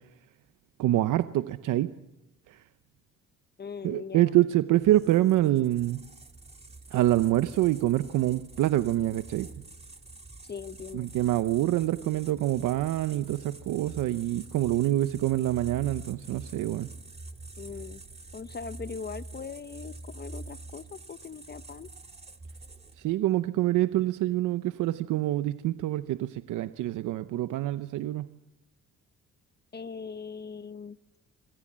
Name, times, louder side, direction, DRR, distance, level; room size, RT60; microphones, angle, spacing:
voice 1, 0.8-1.9 2.5-2.6 3.8-6.0 6.9-9.5 10.9-16.9 23.0-28.3, right 14 dB, 85° right, 11 dB, 0.9 m, -26 dB
voice 2, 3.6-4.4 10.5-11.1 17.6-18.0 18.3-21.9 29.7-31.0, left 5 dB, 35° left, 15 dB, 0.9 m, -40 dB
sound 1, 4.8-23.1, right 2 dB, 20° right, 2.5 m, -46 dB
27.5 x 24.5 x 7.5 m, 0.93 s
cardioid pair, 90°, 30 cm